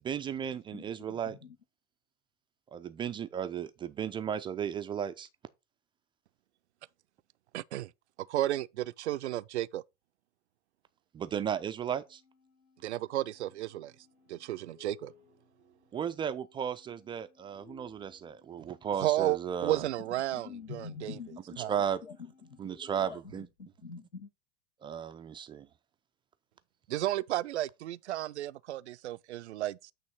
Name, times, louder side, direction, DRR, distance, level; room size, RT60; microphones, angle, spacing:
voice 1, 0.0-1.4 2.7-5.3 11.1-12.2 15.9-19.8 21.7-22.0 22.6-23.5 24.8-25.7, right 8 dB, 15° right, 0.3 m, -35 dB
voice 2, 0.7-1.6 20.3-21.7 22.0-22.2 22.4-24.3, left 5 dB, 85° left, 1.2 m, -46 dB
voice 3, 7.5-7.9 8.3-9.8 12.8-13.9 14.3-15.1 19.0-21.2 21.6-21.7 26.9-29.9, right 14 dB, 70° right, 0.5 m, -33 dB
sound 1, 12.0-23.2, left 6 dB, 65° left, 3.0 m, -63 dB
8.8 x 3.1 x 5.9 m
figure-of-eight pair, 85°, 35 cm